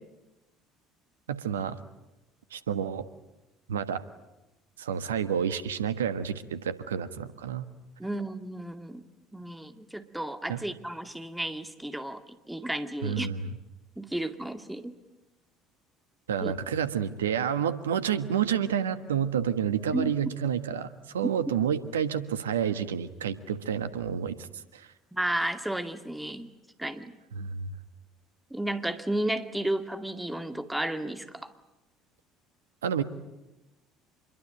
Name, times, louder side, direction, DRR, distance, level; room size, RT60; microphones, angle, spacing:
voice 1, 1.3-1.8 2.5-3.0 3.7-4.0 4.8-7.7 10.5-10.6 13.0-13.5 16.3-24.5 24.7-24.9 27.3-27.7 32.8-33.0, right 8 dB, 85° right, 12 dB, 1.4 m, -29 dB
voice 2, 8.0-9.0 9.3-13.3 14.0-14.9 16.4-16.5 19.9-20.1 25.1-26.5 26.8-27.1 28.5-31.5, right 1 dB, 5° right, 9 dB, 2.3 m, -33 dB
26.0 x 22.5 x 9.1 m, 0.97 s
hypercardioid pair, 60°, 0 cm